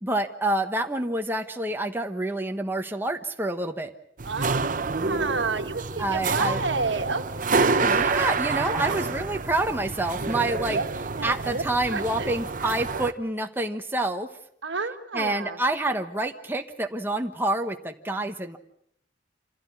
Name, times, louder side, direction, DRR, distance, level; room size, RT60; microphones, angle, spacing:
voice 1, 0.0-3.9 6.0-6.6 7.8-10.8 11.2-14.3 15.1-18.6, right 2 dB, 10° right, 4 dB, 1.2 m, -27 dB
sound 1, 4.2-13.1, right 4 dB, 45° right, 0.9 m, -28 dB
voice 2, 4.2-7.6 8.6-9.0 10.6-10.9 11.1-11.6 11.9-12.3 14.6-15.6, right 4 dB, 75° right, 7 dB, 1.7 m, -30 dB
27.0 x 16.0 x 8.6 m, 0.71 s
head